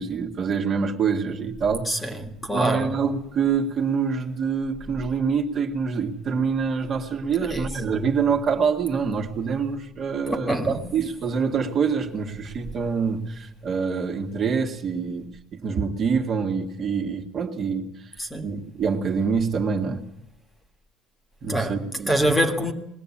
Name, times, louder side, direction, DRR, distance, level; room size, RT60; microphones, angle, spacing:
voice 1, 0.0-2.1 2.5-20.1 21.4-22.3, right 5 dB, 35° right, 3 dB, 1.9 m, -26 dB
voice 2, 1.9-3.0 7.5-7.7 10.5-10.9 18.2-18.5 21.5-21.8 22.1-22.7, equal, 10° left, 5 dB, 1.8 m, -25 dB
21.0 x 17.5 x 8.6 m, 0.80 s
cardioid pair, 165°, 0 cm